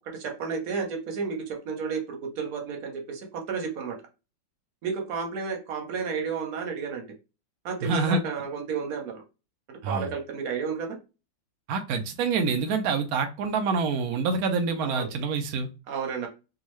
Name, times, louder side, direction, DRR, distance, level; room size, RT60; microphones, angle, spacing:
voice 1, 0.1-4.0 4.8-7.1 7.6-9.2 9.7-11.0 14.8-15.1 15.9-16.3, right 5 dB, 55° right, 2 dB, 1.1 m, -32 dB
voice 2, 7.8-8.2 9.8-10.1 11.7-15.7, right 4 dB, 90° right, 6 dB, 0.8 m, -26 dB
3.5 x 2.3 x 3.1 m, 0.29 s
omnidirectional pair, 2.2 m